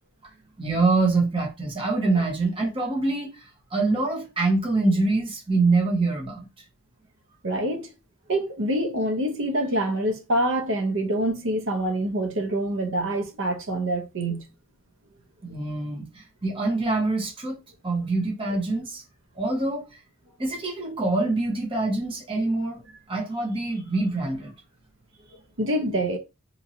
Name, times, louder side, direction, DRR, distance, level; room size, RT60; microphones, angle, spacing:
voice 1, 0.6-3.3 3.7-6.5 15.4-16.1 16.4-17.6 17.8-19.0 19.4-19.9 20.4-22.8 23.1-24.5, right 3 dB, 25° right, 0.8 m, -25 dB
voice 2, 7.4-7.9 8.3-14.4 25.6-26.2, right 1 dB, 65° right, 0.7 m, -26 dB
3.0 x 2.6 x 2.6 m
head